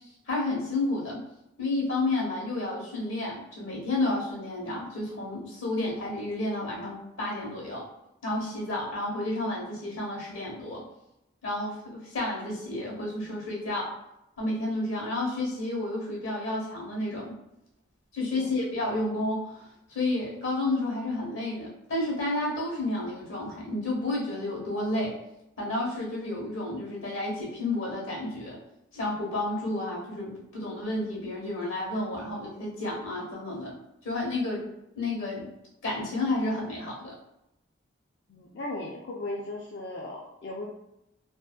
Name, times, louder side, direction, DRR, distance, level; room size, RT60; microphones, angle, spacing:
voice 1, 0.3-1.2 1.6-7.9 8.2-10.8 11.4-13.9 14.4-17.3 18.1-25.2 25.6-28.6 28.9-33.7 34.0-34.7 34.9-35.5 35.8-37.1, left 2 dB, 85° left, -3 dB, 1.0 m, -31 dB
voice 2, 38.3-40.7, left 2 dB, 55° left, -3 dB, 0.3 m, -37 dB
2.5 x 2.2 x 2.3 m, 0.84 s
head